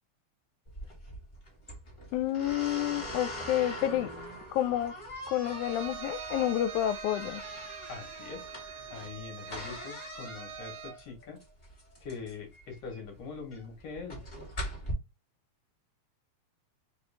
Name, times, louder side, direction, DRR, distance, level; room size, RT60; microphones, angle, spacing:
sound 1, 0.7-14.9, equal, 15° left, 1.3 m, -42 dB
voice 1, 2.1-4.1 4.5-4.9 5.3-7.4, left 12 dB, 85° left, 2.0 m, -29 dB
Bowed string instrument, 5.4-11.0, right 7 dB, 80° right, 2.0 m, -44 dB
voice 2, 7.9-8.5 8.9-11.4 12.0-14.2, left 5 dB, 65° left, 2.1 m, -43 dB
4.7 x 3.1 x 3.3 m
omnidirectional pair, 3.4 m